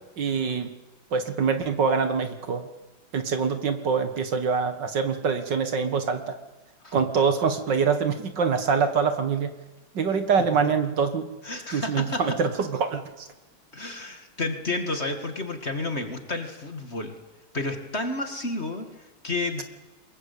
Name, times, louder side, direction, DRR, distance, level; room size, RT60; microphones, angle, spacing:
voice 1, 0.2-0.7 1.1-2.7 3.1-6.4 6.9-9.6 10.0-11.3 11.7-13.3, right 5 dB, 60° right, 9 dB, 2.1 m, -25 dB
voice 2, 11.4-12.4 13.7-17.2 17.5-19.6, left 2 dB, 30° left, 7 dB, 2.2 m, -31 dB
23.5 x 21.5 x 8.6 m, 1.1 s
omnidirectional pair, 2.3 m